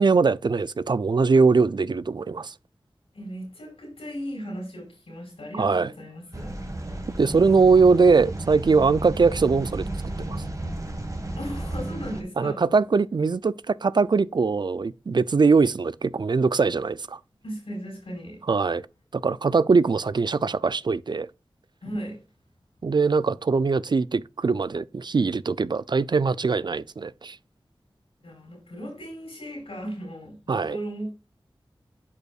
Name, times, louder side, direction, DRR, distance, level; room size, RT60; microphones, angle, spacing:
voice 1, 0.0-2.5 5.6-5.9 7.2-9.9 10.3-10.4 12.4-17.2 18.5-18.9 19.1-21.3 22.8-27.4 30.5-30.8, right 4 dB, 50° right, 0.4 m, -21 dB
voice 2, 3.1-6.6 11.3-12.7 17.4-18.4 21.8-22.2 28.2-31.1, equal, 80° left, 4.4 m, -36 dB
sound 1, 6.3-12.2, right 1 dB, 35° right, 1.6 m, -33 dB
10.5 x 5.3 x 2.3 m
cardioid pair, 45°, 10 cm